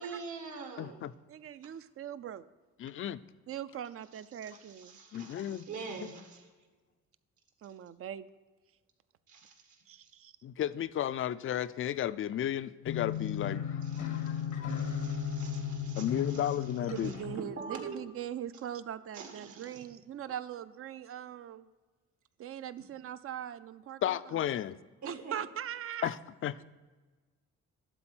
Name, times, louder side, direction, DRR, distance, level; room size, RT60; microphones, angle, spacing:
voice 1, 0.0-1.1 4.1-6.4 9.3-10.1 13.8-16.6 17.0-18.0 19.1-19.8 25.0-25.4, right 5 dB, 70° right, 3 dB, 1.7 m, -45 dB
voice 2, 0.8-1.1 2.8-3.2 5.1-5.7 10.4-14.8 16.0-17.1 24.0-24.8 26.0-26.6, left 11 dB, 45° left, 15 dB, 0.4 m, -34 dB
voice 3, 1.3-2.5 3.5-5.0 7.6-8.3 9.9-10.3 16.8-21.7 22.4-24.0 25.1-26.1, right 10 dB, 50° right, 14 dB, 0.5 m, -41 dB
sound 1, 12.8-17.4, left 7 dB, 85° left, 1.2 m, -35 dB
11.5 x 4.0 x 6.1 m, 1.3 s
cardioid pair, 90°, 30 cm